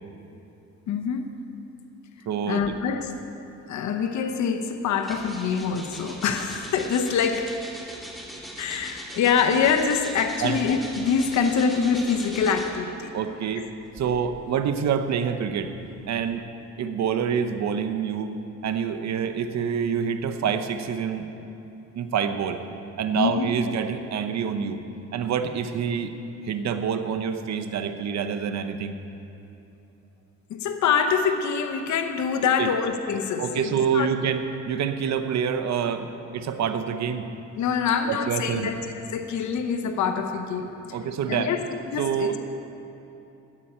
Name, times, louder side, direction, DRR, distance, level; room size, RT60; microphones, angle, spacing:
voice 1, 0.9-1.3 2.5-3.1 3.7-7.5 8.6-13.1 13.6-13.7 23.2-23.5 30.5-34.1 37.6-38.8 39.1-41.0 41.3-41.6 41.9-42.4, left 6 dB, 70° left, 6 dB, 0.9 m, -25 dB
voice 2, 2.3-2.6 10.4-10.6 13.1-13.7 13.9-15.7 16.1-16.4 16.8-18.3 18.6-21.3 21.9-22.6 23.0-24.8 25.1-26.1 26.4-29.0 32.4-32.7 33.4-37.3 38.1-38.7 40.9-41.5 42.0-42.3, right 7 dB, 65° right, 8 dB, 0.9 m, -27 dB
sound 1, 5.0-12.9 13.8-16.3, equal, ahead, 2.3 m, -41 dB
16.5 x 9.9 x 4.4 m, 2.9 s
cardioid pair, 90°, 30 cm